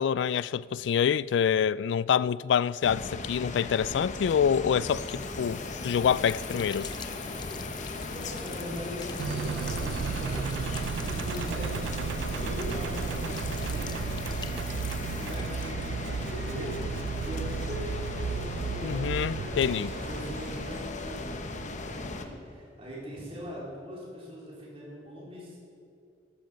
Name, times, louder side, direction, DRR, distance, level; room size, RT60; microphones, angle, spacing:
voice 1, 0.0-6.9 18.8-19.9, left 8 dB, 75° left, 0.3 m, -26 dB
sound 1, 2.8-22.3, left 2 dB, 45° left, 1.0 m, -37 dB
sound 2, 4.9-16.3, left 5 dB, 25° left, 0.6 m, -44 dB
voice 2, 8.1-10.5 11.0-12.1 12.4-14.6 14.9-16.9 17.2-25.6, equal, 35° right, 4.0 m, -41 dB
Engine, 9.2-20.8, right 6 dB, 85° right, 0.3 m, -34 dB
13.5 x 13.0 x 5.1 m
head